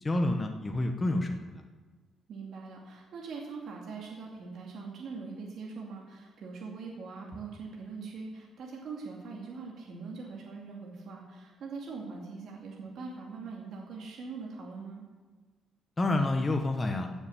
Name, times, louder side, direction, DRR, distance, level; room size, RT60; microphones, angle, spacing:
voice 1, 0.0-1.6 16.0-17.1, left 2 dB, 20° left, 3 dB, 1.0 m, -28 dB
voice 2, 2.3-15.0, right 4 dB, 60° right, -2 dB, 2.3 m, -42 dB
16.5 x 7.0 x 7.0 m, 1.4 s
cardioid pair, 155°, 0 cm